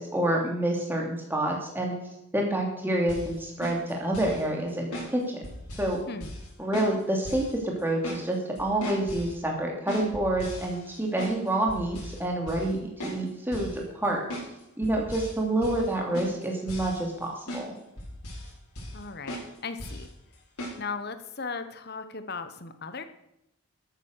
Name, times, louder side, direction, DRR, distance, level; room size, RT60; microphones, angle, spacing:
voice 1, 0.0-1.9 2.3-5.4 5.8-6.0 6.6-14.2 14.8-17.7, right 1 dB, 10° right, -1 dB, 2.8 m, -28 dB
sound 1, 3.1-3.3 3.6-4.4 4.9-5.1 5.4-5.9 6.2-6.5 6.7-7.0 7.2-7.5 7.8-8.2 8.6-9.3 9.9-11.4 11.7-12.2 12.5-12.7 13.0-13.2 13.5-13.8 14.3-14.5 14.8-15.3 15.6-15.9 16.1-17.2 17.5-17.6 18.0-18.5 18.7-19.0 19.3-19.5 19.8-20.0 20.6-20.8, equal, 85° left, 5.6 m, -37 dB
voice 2, 18.9-20.1 20.8-23.0, left 4 dB, 45° left, 10 dB, 1.1 m, -37 dB
13.0 x 9.1 x 6.7 m, 0.83 s
head